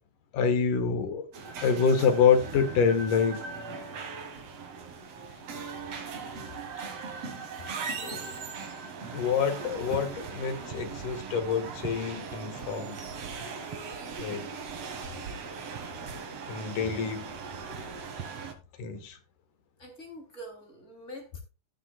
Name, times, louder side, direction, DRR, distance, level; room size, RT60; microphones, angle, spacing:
voice 1, 0.3-1.3 1.6-3.5 8.0-8.4 9.1-13.0 14.2-14.5 16.5-17.4 18.8-19.2, left 6 dB, 80° left, 3.2 m, -27 dB
sound 1, 1.3-18.5, right 5 dB, 55° right, 2.6 m, -39 dB
voice 2, 19.8-21.4, equal, 20° left, 3.7 m, -45 dB
16.5 x 7.1 x 2.4 m
omnidirectional pair, 3.7 m